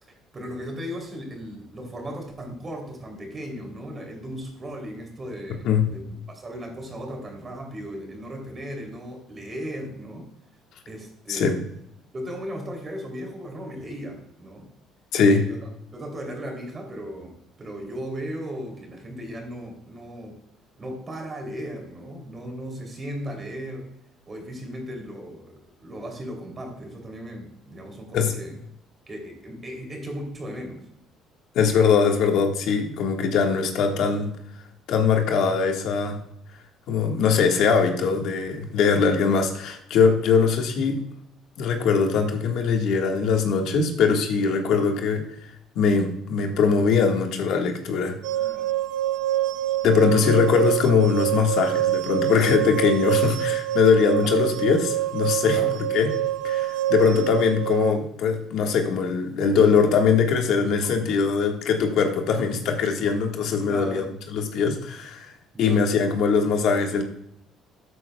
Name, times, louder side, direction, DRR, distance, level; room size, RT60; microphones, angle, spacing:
voice 1, 0.0-10.3 10.9-11.6 12.1-14.6 15.3-20.4 20.8-23.9 24.3-28.6 29.1-30.8 44.7-44.8 48.4-48.7 49.9-50.4 54.2-54.6 55.4-55.7 57.0-57.2 63.6-64.2 65.5-65.9, equal, 25° right, 2 dB, 2.9 m, -36 dB
voice 2, 15.1-15.5 28.1-28.3 31.5-34.3 34.9-36.2 36.9-41.0 41.6-45.2 45.7-48.2 49.8-55.6 55.9-56.1 56.4-64.0 64.3-65.3 65.6-67.0, left 5 dB, 65° left, 4 dB, 1.5 m, -21 dB
sound 1, 48.2-57.9, right 13 dB, 90° right, 0.4 m, -26 dB
13.5 x 8.2 x 2.2 m, 0.73 s
cardioid pair, 125°, 0 cm